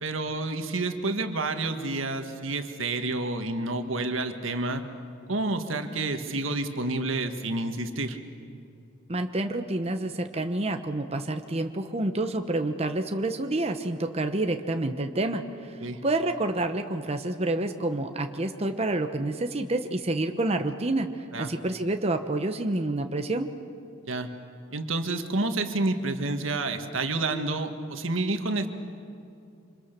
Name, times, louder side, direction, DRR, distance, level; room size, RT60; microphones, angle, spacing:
voice 1, 0.0-4.8 5.3-8.2 15.8-16.0 21.3-21.5 24.1-24.3 24.7-28.7, right 2 dB, 80° right, 6 dB, 1.8 m, -29 dB
voice 2, 9.1-23.5, right 2 dB, 30° right, 6 dB, 1.0 m, -28 dB
27.0 x 26.5 x 6.8 m, 2.6 s
head